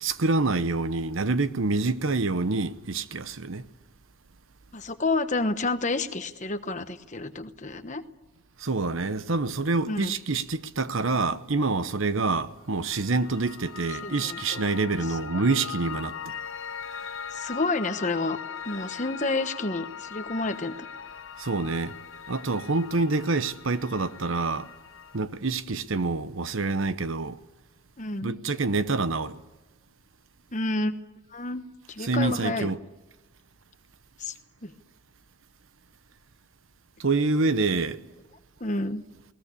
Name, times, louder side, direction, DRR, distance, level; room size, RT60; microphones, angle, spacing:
voice 1, 0.0-3.6 8.6-16.2 21.4-21.9 22.3-24.7 25.1-27.4 28.2-29.4 32.0-32.8 37.0-38.0, right 3 dB, 65° right, 1.0 m, -26 dB
voice 2, 4.7-8.0 9.9-10.1 14.0-14.6 17.3-18.4 18.6-20.9 28.0-28.4 30.5-30.9 31.3-32.7 34.2-34.3 34.6-34.7 38.6-39.0, left 2 dB, 35° left, 1.1 m, -29 dB
Piano, 12.8-25.2, left 7 dB, 60° left, 1.1 m, -40 dB
20.5 x 19.0 x 8.5 m
head